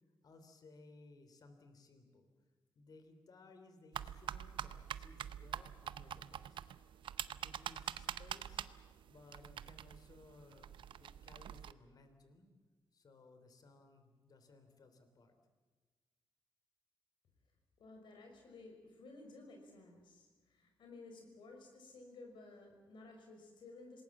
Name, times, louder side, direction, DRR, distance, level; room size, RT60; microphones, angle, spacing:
voice 1, 0.2-2.3 2.7-6.7 7.4-8.7 9.1-12.5 12.9-15.3, left 3 dB, 50° left, 7 dB, 3.3 m, -61 dB
sound 1, 3.9-11.7, right 10 dB, 75° right, 0.7 m, -45 dB
voice 2, 17.8-24.0, left 3 dB, 70° left, 3 dB, 5.6 m, -55 dB
27.5 x 20.0 x 7.4 m, 1.3 s
wide cardioid pair, 145°, 9 cm